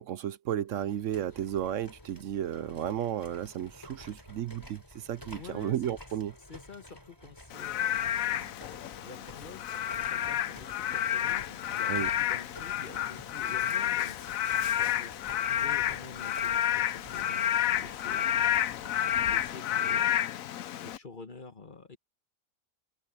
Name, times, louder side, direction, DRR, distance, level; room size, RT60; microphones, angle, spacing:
voice 1, 0.0-6.3 11.9-12.1, right 10 dB, 70° right, 1.0 m, -33 dB
sound 1, 0.7-19.6, left 1 dB, 15° left, 3.6 m, -51 dB
voice 2, 5.3-5.9 6.5-8.5 9.0-14.2 14.5-15.1 15.4-18.4 18.9-20.3 20.8-22.0, left 4 dB, 40° left, 1.4 m, -48 dB
Frog / Rain, 7.5-21.0, left 11 dB, 90° left, 1.1 m, -30 dB
omnidirectional pair, 1.4 m